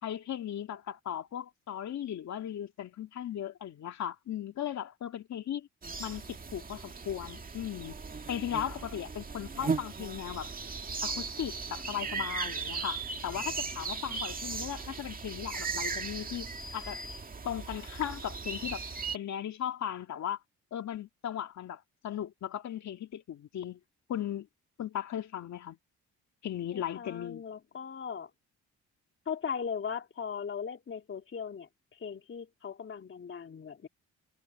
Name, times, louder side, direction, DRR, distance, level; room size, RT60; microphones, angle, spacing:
voice 1, 0.0-5.7 6.0-8.0 8.3-10.5 11.0-17.0 17.4-18.8 19.1-20.4 20.7-23.8 24.1-24.5 24.8-25.8 26.4-27.4, left 10 dB, 65° left, 2.5 m, -37 dB
sound 1, 5.8-19.2, right 4 dB, 30° right, 2.1 m, -37 dB
voice 2, 26.7-28.3 29.2-33.9, left 7 dB, 40° left, 3.4 m, -38 dB
cardioid pair, 90°, 30 cm